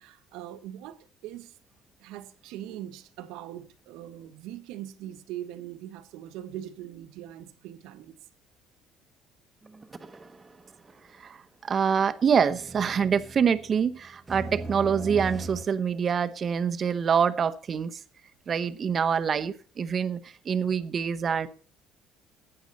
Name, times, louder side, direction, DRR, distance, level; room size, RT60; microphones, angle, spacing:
voice 1, 0.0-1.6 2.0-8.2, right 12 dB, 85° right, 1.5 m, -41 dB
sound 1, 9.7-10.6 10.9-11.0 12.5-15.7, right 2 dB, 20° right, 1.2 m, -39 dB
voice 2, 11.2-18.0 18.5-21.5, right 7 dB, 35° right, 0.9 m, -26 dB
15.5 x 9.9 x 4.1 m
cardioid pair, 130°, 0 cm